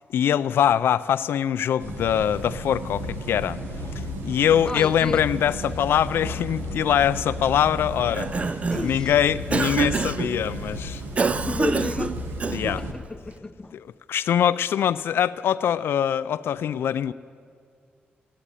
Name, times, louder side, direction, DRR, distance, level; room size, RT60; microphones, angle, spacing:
voice 1, 0.0-3.6 4.2-8.3 8.8-11.0 12.5-12.8 13.7-17.1, left 9 dB, 80° left, 0.3 m, -23 dB
sound 1, 1.8-12.9, equal, 85° right, 1.6 m, -33 dB
voice 2, 4.7-5.3 8.7-9.1 11.4-12.2 13.1-13.7, left 2 dB, 20° left, 0.6 m, -31 dB
Cough, 8.0-9.0 9.5-10.3 11.2-12.8, right 4 dB, 35° right, 0.4 m, -26 dB
16.0 x 9.9 x 8.9 m
cardioid pair, 85°, 4 cm